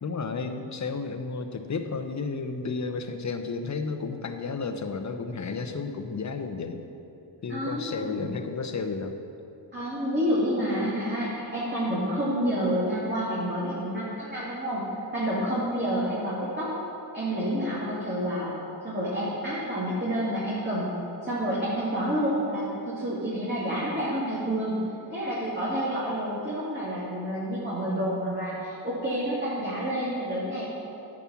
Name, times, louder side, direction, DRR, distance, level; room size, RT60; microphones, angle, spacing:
voice 1, 0.0-6.8 7.4-9.2, left 4 dB, 40° left, 6 dB, 0.8 m, -32 dB
voice 2, 7.5-8.3 9.7-14.8 15.1-16.7 17.1-18.5 18.8-20.9 21.2-24.8 25.1-30.6, equal, 25° right, -9 dB, 2.5 m, -29 dB
11.0 x 6.2 x 7.2 m, 2.8 s
wide cardioid pair, 110°, 45 cm